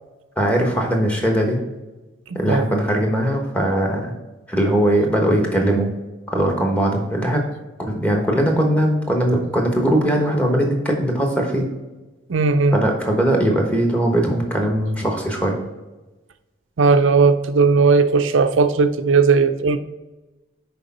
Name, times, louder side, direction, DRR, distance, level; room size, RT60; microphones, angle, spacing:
voice 1, 0.4-1.6 2.3-4.1 4.5-5.9 6.3-7.4 7.8-11.7 12.7-15.6, right 1 dB, 5° left, 0 dB, 1.1 m, -20 dB
voice 2, 2.3-2.7 12.3-12.8 16.8-19.8, right 4 dB, 80° right, 10 dB, 0.5 m, -16 dB
6.5 x 4.8 x 4.2 m, 1.1 s
head